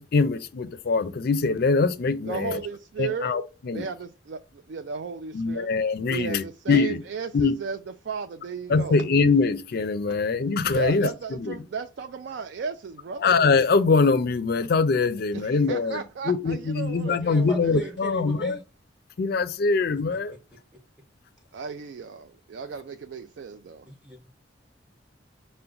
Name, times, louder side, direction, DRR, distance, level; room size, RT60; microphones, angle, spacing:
voice 1, 0.0-2.6 3.0-3.8 5.3-7.0 7.3-7.5 8.7-11.5 13.2-18.6 19.2-20.4, left 4 dB, 55° left, 0.4 m, -23 dB
voice 2, 2.2-3.4 3.7-5.7 6.1-7.8 8.0-9.0 10.7-13.4 15.3-17.8 21.5-23.9, right 5 dB, 65° right, 0.3 m, -35 dB
voice 3, 17.1-18.6 20.3-20.4 23.9-24.3, right 2 dB, 5° left, 0.8 m, -37 dB
5.7 x 2.1 x 3.8 m
head